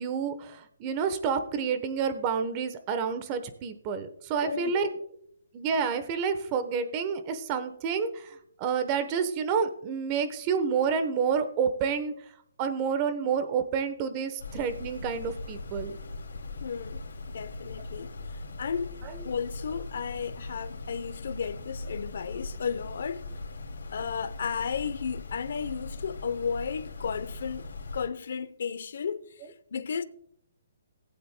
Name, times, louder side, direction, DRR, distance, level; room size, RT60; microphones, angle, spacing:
voice 1, 0.0-4.9 5.5-12.1 12.6-16.0 19.0-19.2, right 6 dB, 25° right, 1.0 m, -29 dB
voice 2, 4.4-4.8 16.6-17.0 17.3-18.1 18.6-18.9 19.2-23.2 23.9-29.3 29.7-30.0, left 6 dB, 60° left, 0.7 m, -33 dB
sound 1, 14.4-28.1, left 2 dB, 85° left, 2.5 m, -40 dB
19.0 x 8.5 x 2.2 m
hypercardioid pair, 160°, 0 cm